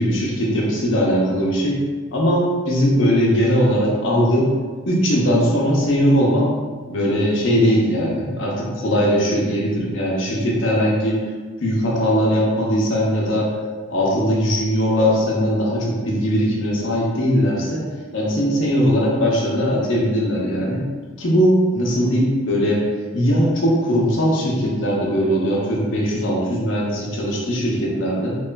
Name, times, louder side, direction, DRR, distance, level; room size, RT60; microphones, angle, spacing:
voice 1, 0.0-1.8 2.1-4.5 4.9-6.5 6.9-11.2 11.6-13.5 13.9-17.8 18.1-20.8 21.2-22.9 23.1-28.4, equal, 70° left, -3 dB, 0.6 m, -19 dB
2.9 x 2.4 x 2.2 m, 1.4 s
head